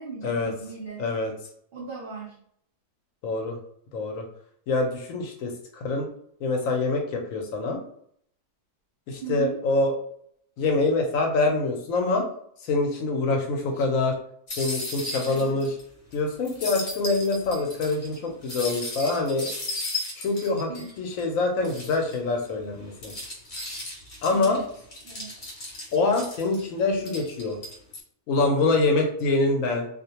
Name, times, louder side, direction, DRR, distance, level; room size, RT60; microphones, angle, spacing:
voice 1, 0.0-1.0 1.7-2.4 9.2-9.6 13.7-13.8 15.3-15.6 20.7-21.0 24.3-24.7 25.0-25.3, right 5 dB, 85° right, -4 dB, 0.4 m, -37 dB
voice 2, 1.0-1.3 3.2-3.6 3.9-4.3 4.7-6.1 6.4-7.8 9.1-9.9 10.6-12.2 12.6-14.2 14.6-15.8 16.1-19.5 20.2-20.7 21.0-23.1 24.2-24.6 25.9-27.6 28.3-29.9, left 3 dB, 70° left, 2 dB, 0.9 m, -25 dB
sound 1, 14.5-15.8 16.1-16.2 16.4-21.2 21.6-22.2 22.7-26.6 27.1-28.0, left 2 dB, 40° left, 0.8 m, -36 dB
2.4 x 2.1 x 2.8 m, 0.66 s
omnidirectional pair, 1.6 m